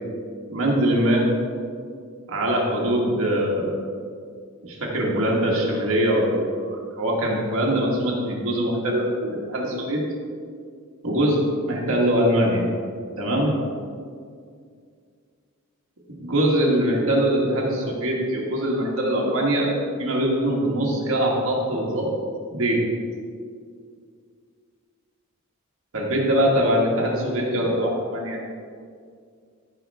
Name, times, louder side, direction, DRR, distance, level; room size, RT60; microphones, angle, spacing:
voice 1, 0.5-1.3 2.3-3.8 4.6-10.0 11.0-12.6 13.2-13.6 16.2-19.7 20.0-22.1 22.5-22.8 25.9-28.4, right 1 dB, 65° right, -3 dB, 1.6 m, -22 dB
14.5 x 5.6 x 3.5 m, 2.2 s
head